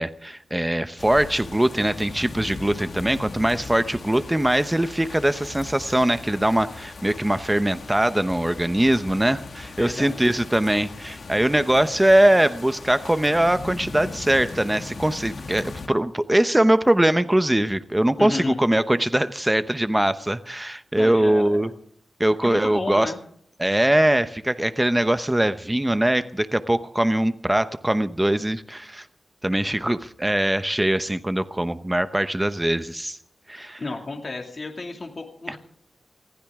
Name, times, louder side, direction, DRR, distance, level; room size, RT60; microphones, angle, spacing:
voice 1, 0.0-21.7 22.2-23.1 23.6-29.1 29.4-33.2 33.5-33.8 35.5-35.6, right 1 dB, 10° right, 12 dB, 0.8 m, -22 dB
sound 1, 1.0-15.9, left 4 dB, 60° left, 1.9 m, -39 dB
voice 2, 9.8-10.3 18.2-18.6 20.9-21.7 22.4-23.2 33.8-35.6, left 3 dB, 40° left, 3 dB, 2.3 m, -32 dB
20.5 x 15.5 x 3.6 m, 0.68 s
wide cardioid pair, 110°, 0 cm